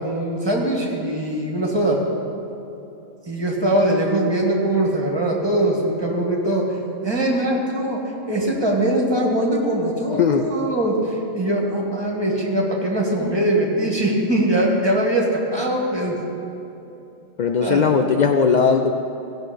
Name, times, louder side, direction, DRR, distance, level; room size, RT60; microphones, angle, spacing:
voice 1, 0.0-2.0 3.3-6.6 7.0-8.0 8.3-16.2 17.6-17.9, right 1 dB, 20° right, -2 dB, 1.6 m, -21 dB
voice 2, 17.4-18.9, left 6 dB, 85° left, 4 dB, 0.4 m, -18 dB
17.0 x 6.1 x 5.1 m, 2.9 s
omnidirectional pair, 1.4 m